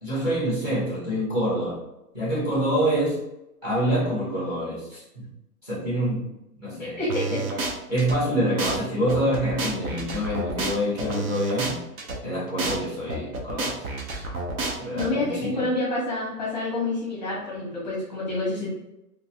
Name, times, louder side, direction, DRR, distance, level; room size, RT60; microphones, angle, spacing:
voice 1, 0.0-1.8 2.1-3.2 3.6-5.3 5.6-6.3 6.6-7.4 7.9-11.8 12.2-13.9 14.8-15.7, equal, 15° right, -8 dB, 0.8 m, -26 dB
voice 2, 7.0-7.4 14.9-18.7, left 2 dB, 30° left, -5 dB, 0.7 m, -28 dB
sound 1, 7.1-8.2 8.6-8.8 9.1-12.2 12.6-12.8 13.1-15.1, right 3 dB, 65° right, 0.8 m, -29 dB
2.6 x 2.5 x 2.8 m, 0.90 s
hypercardioid pair, 175°, 47 cm